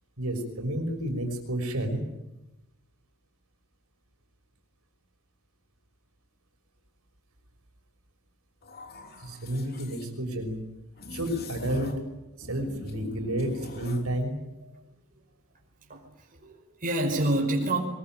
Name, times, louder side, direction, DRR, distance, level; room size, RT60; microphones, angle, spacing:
voice 1, 0.2-2.0 9.2-10.6 11.1-12.1 12.4-14.4, right 1 dB, 70° right, 4 dB, 6.0 m, -31 dB
sound 1, 8.6-10.1 11.0-12.1 12.4-14.1, left 1 dB, 45° left, 3.6 m, -42 dB
voice 2, 15.9-17.8, right 1 dB, 40° right, 1 dB, 5.4 m, -28 dB
23.0 x 23.0 x 9.3 m, 0.96 s
head